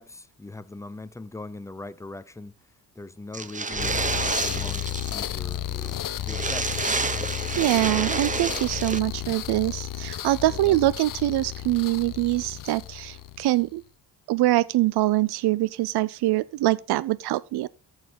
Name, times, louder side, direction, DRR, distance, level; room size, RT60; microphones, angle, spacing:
voice 1, 0.0-3.9 4.3-6.0 6.3-7.2 10.5-10.8, left 2 dB, 10° left, 0.6 m, -41 dB
sound 1, 3.3-5.3 5.5-5.6 5.9-6.0 6.2-9.0, right 4 dB, 20° right, 0.8 m, -29 dB
sound 2, 3.7-13.7, left 11 dB, 60° left, 0.8 m, -33 dB
voice 2, 7.6-13.8 14.3-17.7, right 17 dB, 85° right, 0.5 m, -24 dB
14.0 x 4.8 x 5.1 m
cardioid pair, 105°, 38 cm